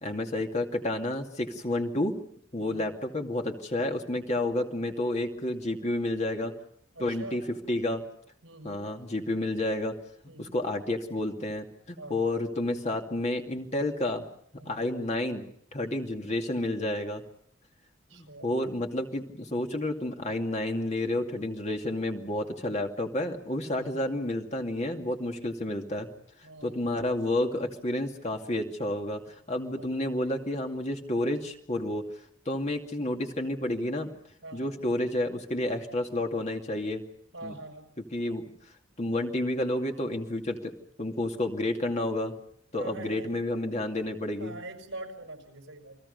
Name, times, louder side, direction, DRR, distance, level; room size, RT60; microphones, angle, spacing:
voice 1, 0.0-2.2 2.5-6.5 7.0-8.0 8.6-9.9 10.4-14.2 14.7-15.5 15.7-17.2 18.1-26.1 26.6-29.2 29.5-32.1 32.5-34.1 34.5-37.0 37.4-37.6 38.1-38.4 39.0-40.7 41.0-42.3 42.7-44.5, left 1 dB, 35° left, 3 dB, 2.5 m, -30 dB
voice 2, 2.6-2.9 7.0-7.5 8.4-8.9 10.2-10.6 12.0-12.3 14.6-14.9 15.8-16.1 18.1-18.6 23.6-24.1 26.4-27.0 29.7-29.9 34.4-34.7 37.3-37.9 42.8-43.3 44.4-46.0, right 2 dB, 70° right, 6 dB, 5.4 m, -44 dB
29.5 x 21.5 x 5.5 m, 0.66 s
head